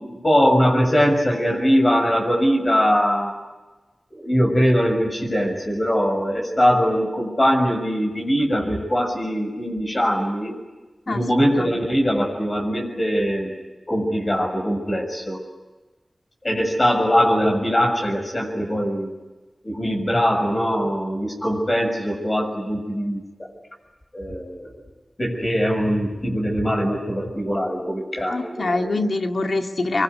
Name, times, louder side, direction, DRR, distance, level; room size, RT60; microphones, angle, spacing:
voice 1, 0.0-3.4 4.2-10.5 11.1-13.5 13.9-15.4 16.4-19.1 19.6-23.2 24.1-24.8 25.2-29.0, equal, 35° left, 1 dB, 6.9 m, -21 dB
voice 2, 28.3-30.0, left 2 dB, 70° left, 4 dB, 2.1 m, -24 dB
24.0 x 24.0 x 9.7 m, 1.2 s
cardioid pair, 45°, 0 cm